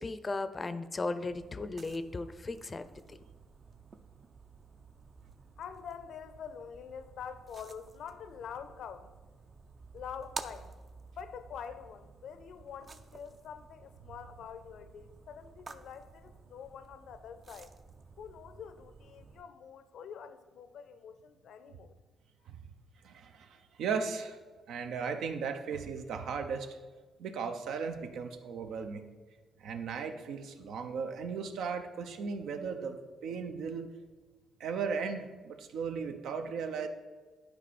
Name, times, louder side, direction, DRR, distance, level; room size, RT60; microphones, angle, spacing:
voice 1, 0.0-2.8, left 3 dB, 30° left, 12 dB, 0.5 m, -36 dB
sound 1, 1.3-19.4, right 4 dB, 40° right, 0.5 m, -51 dB
voice 2, 5.6-9.1 9.9-10.7 11.2-17.7 18.2-22.0, left 7 dB, 70° left, 12 dB, 0.6 m, -46 dB
voice 3, 23.0-24.4 24.7-26.7 27.2-29.0 29.6-33.0 33.2-33.9 34.6-36.9, right 5 dB, 75° right, 7 dB, 0.8 m, -36 dB
10.5 x 4.8 x 4.2 m, 1.4 s
cardioid pair, 90°, 0 cm